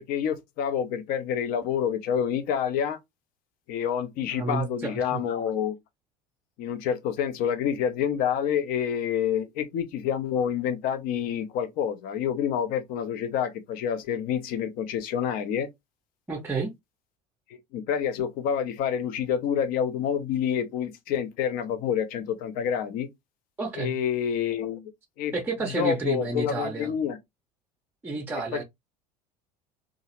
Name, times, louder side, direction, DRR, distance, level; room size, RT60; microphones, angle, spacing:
voice 1, 0.0-3.0 3.7-5.8 6.6-15.7 17.7-23.1 23.8-24.9 25.2-25.3 25.6-27.2 28.5-28.6, left 8 dB, 45° left, 0.6 m, -28 dB
voice 2, 4.3-5.2 16.3-16.7 23.6-23.9 25.3-26.9 28.0-28.6, right 3 dB, 10° right, 0.7 m, -30 dB
2.8 x 2.4 x 2.8 m
figure-of-eight pair, 70°, 21 cm